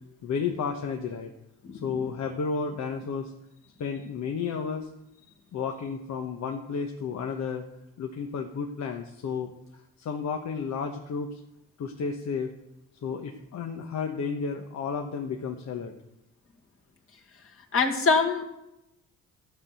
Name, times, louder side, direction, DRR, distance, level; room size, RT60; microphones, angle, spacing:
voice 1, 0.2-1.3 1.8-3.3 3.8-4.9 5.5-7.7 8.0-9.5 10.0-11.4 11.8-12.5 13.0-15.9, left 5 dB, 65° left, 3 dB, 1.2 m, -32 dB
voice 2, 17.7-18.5, left 4 dB, 45° left, 2 dB, 2.1 m, -24 dB
13.0 x 5.9 x 8.2 m, 0.89 s
cardioid pair, 90°, 30 cm